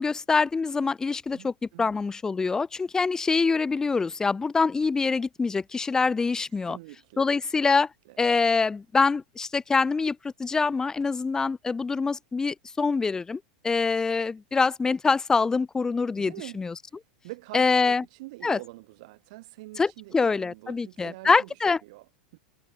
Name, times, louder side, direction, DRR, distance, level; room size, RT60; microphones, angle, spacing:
voice 1, 0.0-1.5 1.8-6.8 7.2-7.9 8.2-16.7 17.5-18.0 18.4-18.6 19.8-21.8, left 4 dB, 15° left, 0.5 m, -25 dB
voice 2, 1.3-1.9 3.7-3.9 6.6-7.2 8.1-8.2 14.0-14.1 16.2-16.6 16.9-22.4, right 22 dB, 60° right, 6.1 m, -45 dB
hypercardioid pair, 105°, 4 cm